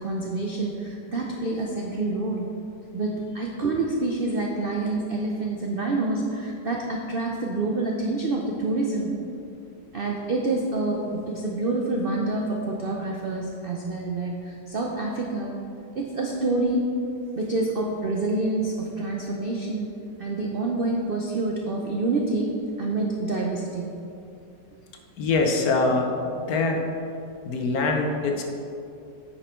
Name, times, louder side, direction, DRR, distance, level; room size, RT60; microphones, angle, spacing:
voice 1, 0.0-2.5 2.9-9.1 9.9-15.5 15.9-16.8 17.3-19.9 20.2-23.9, right 2 dB, 80° right, -1 dB, 0.5 m, -27 dB
voice 2, 25.2-26.9 27.4-28.4, left 3 dB, 60° left, 2 dB, 1.2 m, -24 dB
8.9 x 5.3 x 4.4 m, 2.5 s
omnidirectional pair, 1.9 m